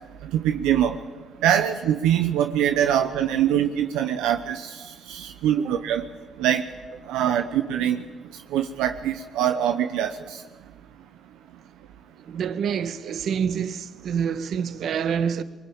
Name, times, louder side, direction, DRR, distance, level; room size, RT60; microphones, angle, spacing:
voice 1, 0.3-1.0 1.4-4.8 5.1-6.0 6.4-6.6 7.1-8.0 8.5-10.1, right 10 dB, 85° right, 0.9 m, -23 dB
voice 2, 12.2-15.4, right 7 dB, 70° right, 1.2 m, -27 dB
22.5 x 21.0 x 8.8 m
supercardioid pair, 55°, 0 cm